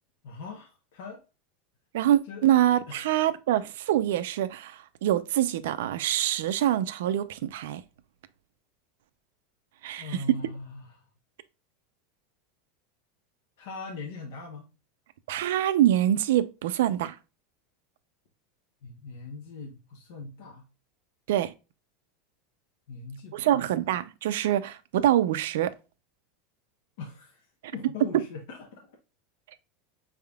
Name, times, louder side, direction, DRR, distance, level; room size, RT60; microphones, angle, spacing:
voice 1, 0.2-1.2 2.3-2.4 2.9-3.1 10.0-11.0 13.6-14.7 18.8-20.7 22.9-23.7 27.0-27.4 27.7-29.0, left 4 dB, 65° left, 0.9 m, -41 dB
voice 2, 1.9-7.8 9.8-10.5 15.3-17.2 21.3-21.5 23.3-25.7, right 12 dB, 80° right, 0.5 m, -25 dB
5.5 x 3.5 x 2.3 m
supercardioid pair, 175°, 0 cm